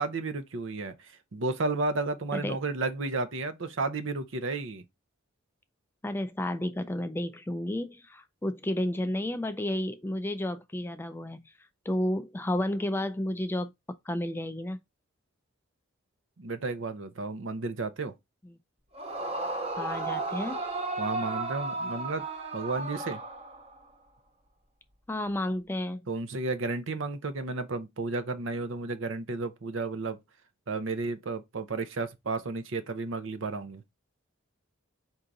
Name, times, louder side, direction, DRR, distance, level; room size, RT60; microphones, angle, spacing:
voice 1, 0.0-4.8 16.4-18.1 21.0-22.2 22.5-23.2 26.1-30.2 30.7-33.8, right 3 dB, 70° right, 0.7 m, -32 dB
voice 2, 6.0-11.5 11.9-13.7 14.1-14.8 18.4-18.6 19.8-20.6 25.1-26.1, left 1 dB, 10° left, 0.3 m, -31 dB
Yell / Screaming, 18.9-23.8, right 3 dB, 30° right, 0.8 m, -34 dB
4.6 x 2.8 x 3.8 m
head